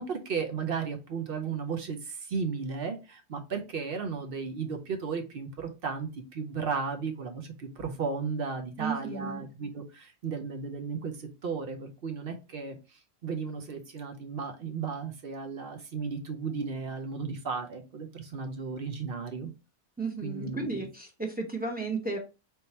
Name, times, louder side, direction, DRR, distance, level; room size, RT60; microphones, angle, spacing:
voice 1, 0.0-12.8 13.2-19.5 20.2-20.9, right 5 dB, 55° right, 5 dB, 0.7 m, -34 dB
voice 2, 8.8-9.4 20.0-22.2, right 3 dB, 10° right, 0 dB, 0.7 m, -34 dB
3.6 x 2.7 x 4.1 m, 0.29 s
omnidirectional pair, 1.3 m